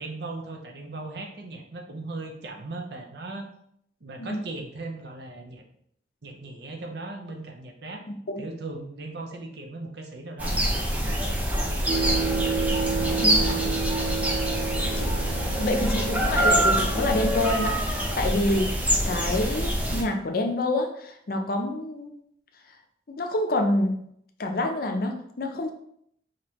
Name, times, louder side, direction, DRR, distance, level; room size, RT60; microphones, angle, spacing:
voice 1, 0.0-3.5 4.0-5.6 6.2-8.0 8.4-13.8, right 2 dB, 65° right, 3 dB, 0.7 m, -38 dB
sound 1, 10.4-20.0, equal, 10° right, 0.6 m, -25 dB
sound 2, 11.9-18.1, right 4 dB, 85° right, 1.3 m, -31 dB
voice 2, 15.6-18.7 19.1-22.1 23.1-24.0 24.4-25.7, left 1 dB, 55° left, 4 dB, 0.6 m, -27 dB
5.1 x 2.8 x 2.9 m, 0.71 s
head